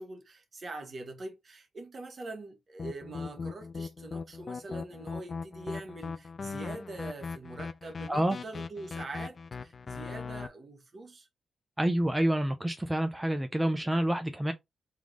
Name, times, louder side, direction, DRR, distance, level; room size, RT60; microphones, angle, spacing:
voice 1, 0.0-11.3, right 2 dB, 45° right, 1.3 m, -43 dB
sound 1, 2.8-10.5, left 4 dB, 45° left, 0.4 m, -39 dB
voice 2, 11.8-14.5, right 1 dB, 10° right, 0.7 m, -28 dB
3.5 x 3.0 x 3.8 m
cardioid pair, 70°, 0 cm